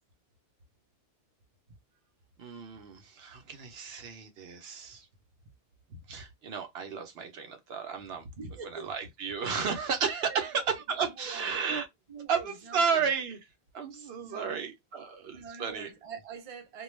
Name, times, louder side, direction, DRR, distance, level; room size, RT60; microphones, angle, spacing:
voice 1, 2.4-5.1 5.9-8.3 8.7-11.9 12.3-13.4 13.7-15.9, right 6 dB, 70° right, 0.8 m, -33 dB
voice 2, 8.4-8.9 10.2-10.8 11.1-11.6 12.1-13.1 14.2-14.7 15.3-16.8, right 6 dB, 40° right, 0.6 m, -45 dB
2.2 x 2.2 x 3.0 m
omnidirectional pair, 1.1 m